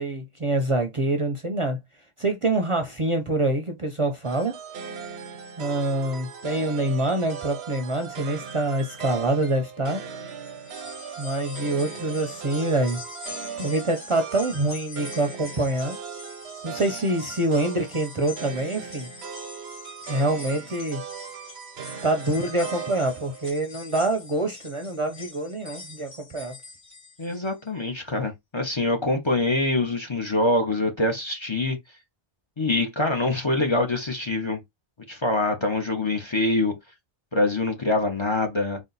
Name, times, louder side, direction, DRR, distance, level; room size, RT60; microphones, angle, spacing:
voice 1, 0.0-1.8 2.2-4.6 5.6-10.0 11.2-13.0 13.6-16.0 16.6-19.1 20.1-21.0 22.0-26.5, right 2 dB, 35° right, 0.6 m, -25 dB
sound 1, 4.2-23.5, right 6 dB, 90° right, 1.0 m, -38 dB
sound 2, 10.3-27.7 28.1-28.2 29.3-29.4, left 3 dB, 55° left, 1.9 m, -44 dB
voice 2, 27.2-31.8 32.6-34.6 35.1-36.7 37.3-38.8, left 2 dB, 30° left, 0.8 m, -24 dB
4.1 x 2.4 x 3.9 m
omnidirectional pair, 1.0 m